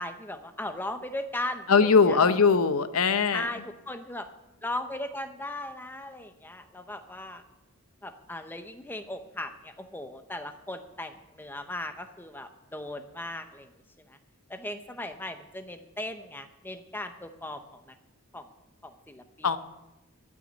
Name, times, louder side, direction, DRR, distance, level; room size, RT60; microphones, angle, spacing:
voice 1, 0.0-2.2 3.3-4.3 4.6-7.4 8.0-13.7 14.1-14.2 14.5-17.9 18.3-18.5 18.8-19.5, left 1 dB, 10° left, 8 dB, 0.7 m, -37 dB
voice 2, 1.7-3.5 19.4-19.6, left 5 dB, 75° left, 12 dB, 0.7 m, -21 dB
13.0 x 6.2 x 8.1 m, 0.97 s
head